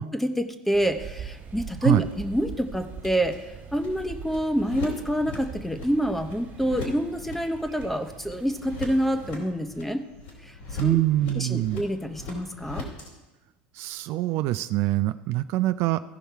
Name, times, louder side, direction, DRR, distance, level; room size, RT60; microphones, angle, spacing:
voice 1, 0.1-10.0 10.4-10.5 10.8-11.0 11.4-12.9, equal, 5° left, 9 dB, 0.9 m, -27 dB
sound 1, 0.7-9.3, right 7 dB, 45° right, 1.9 m, -43 dB
sound 2, 1.1-13.1, left 2 dB, 80° left, 3.0 m, -41 dB
voice 2, 10.8-11.8 13.7-16.0, right 16 dB, 65° right, 12 dB, 0.4 m, -24 dB
15.5 x 5.5 x 4.6 m, 1.2 s
hypercardioid pair, 85°, 5 cm